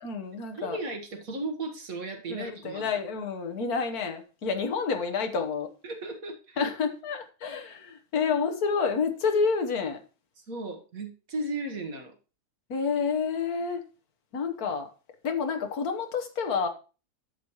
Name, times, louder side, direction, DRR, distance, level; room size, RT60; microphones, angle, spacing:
voice 1, 0.0-0.8 2.3-5.7 6.6-10.0 12.7-13.8 14.3-14.9 15.2-16.7, left 5 dB, 70° left, 1.7 m, -29 dB
voice 2, 0.5-3.0 5.8-6.7 10.5-12.2, right 2 dB, 60° right, 1.7 m, -35 dB
11.0 x 7.1 x 3.0 m
omnidirectional pair, 1.7 m